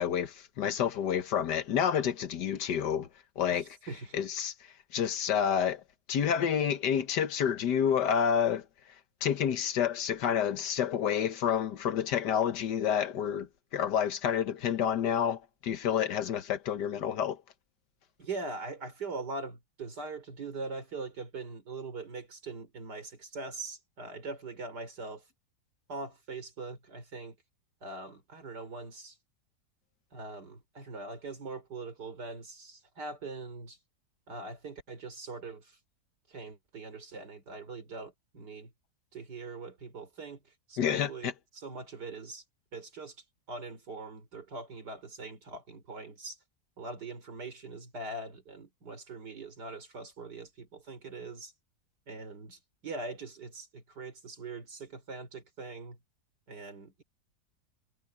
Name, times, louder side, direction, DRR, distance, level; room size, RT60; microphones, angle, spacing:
voice 1, 0.0-3.1 3.4-3.7 4.1-4.5 4.9-5.8 6.1-8.7 9.2-17.4 40.8-41.3, left 8 dB, 85° left, 1.7 m, -29 dB
voice 2, 3.5-4.2 18.2-25.3 25.9-27.3 27.8-29.2 30.1-33.8 34.3-35.8 36.3-38.7 39.1-42.4 42.7-46.4 46.8-51.5 52.1-56.0 56.5-57.0, right 3 dB, 80° right, 4.7 m, -42 dB
omnidirectional pair, 1.8 m